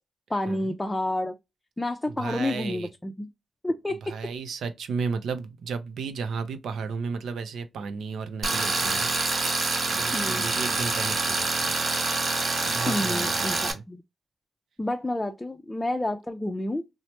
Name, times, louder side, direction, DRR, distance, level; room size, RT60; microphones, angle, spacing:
voice 1, 0.3-1.4 1.8-3.3 3.6-4.1 10.1-10.4 12.9-14.0 14.8-16.8, left 1 dB, 15° left, 0.4 m, -29 dB
voice 2, 2.2-2.9 4.0-9.1 9.9-11.7 12.6-13.8, right 5 dB, 90° right, 0.5 m, -34 dB
Tools, 8.4-13.7, right 3 dB, 60° right, 1.0 m, -26 dB
3.1 x 2.0 x 2.8 m
cardioid pair, 85°, 0 cm